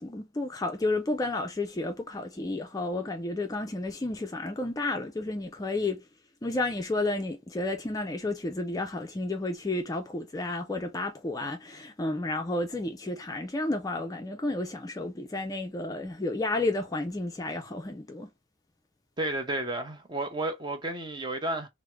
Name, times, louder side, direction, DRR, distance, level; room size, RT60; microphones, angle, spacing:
voice 1, 0.0-6.0 6.4-18.3, left 2 dB, 20° left, 0.3 m, -31 dB
voice 2, 19.2-21.7, right 2 dB, 25° right, 0.6 m, -32 dB
3.4 x 2.0 x 3.0 m
head